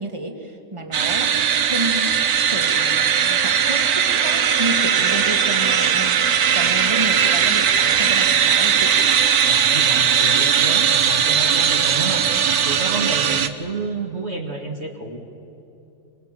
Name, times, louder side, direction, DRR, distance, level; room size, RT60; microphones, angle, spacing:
voice 1, 0.0-2.1 2.5-6.2 6.5-9.0, right 1 dB, 15° right, 5 dB, 1.9 m, -30 dB
sound 1, 0.9-13.5, right 8 dB, 55° right, 1.3 m, -18 dB
voice 2, 9.4-15.2, right 3 dB, 35° right, 0 dB, 2.2 m, -30 dB
27.5 x 23.5 x 7.5 m, 2.8 s
omnidirectional pair, 2.1 m